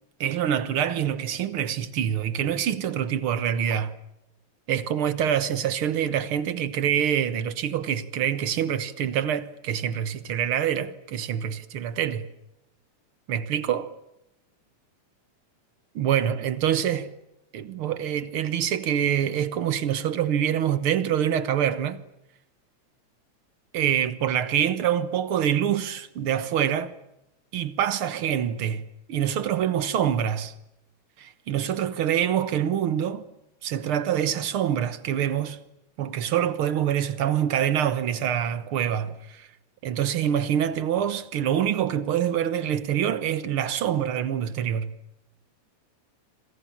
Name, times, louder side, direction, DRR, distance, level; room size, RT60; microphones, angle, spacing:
voice 1, 0.2-4.0 4.7-12.3 13.3-13.9 16.0-17.1 17.5-22.0 23.7-26.9 27.5-30.5 31.2-33.3 33.6-35.6 36.0-39.5 39.8-44.9, right 9 dB, 55° right, 1.8 m, -25 dB
27.0 x 26.5 x 7.3 m
omnidirectional pair, 3.3 m